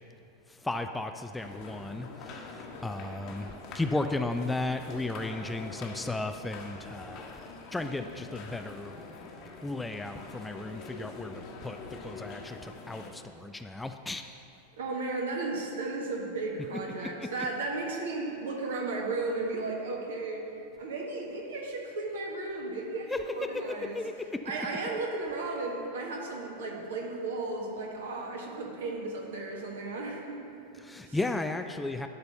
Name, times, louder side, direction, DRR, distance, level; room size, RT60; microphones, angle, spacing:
voice 1, 0.5-7.4 7.7-8.9 9.6-14.4 17.0-17.3 23.1-23.2 23.9-24.1 30.8-32.1, left 2 dB, 5° left, 7 dB, 0.3 m, -35 dB
sound 1, 1.4-13.1, left 3 dB, 40° left, 1.2 m, -45 dB
voice 2, 14.7-20.5 20.8-24.0 24.4-31.2, right 3 dB, 60° right, 0 dB, 1.4 m, -35 dB
11.0 x 4.1 x 6.7 m, 2.8 s
figure-of-eight pair, 90°, 0 cm